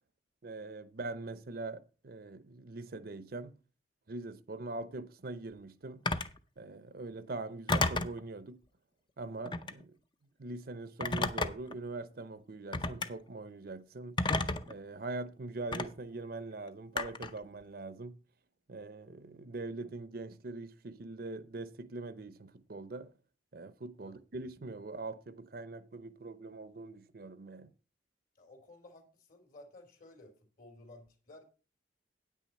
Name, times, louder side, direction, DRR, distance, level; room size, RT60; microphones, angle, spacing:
voice 1, 0.4-3.6 4.1-6.0 6.6-8.6 9.2-10.0 10.4-14.2 14.7-18.2 18.7-23.1 23.5-27.7, right 2 dB, 55° right, 0.7 m, -42 dB
Telephone, 6.1-6.4 7.7-8.2 9.4-9.8 11.0-11.7 12.7-13.1 14.2-14.7 15.7-15.9 17.0-17.4, left 3 dB, 25° left, 0.6 m, -31 dB
voice 2, 28.4-31.4, left 2 dB, 50° left, 2.9 m, -55 dB
9.2 x 9.0 x 4.2 m
head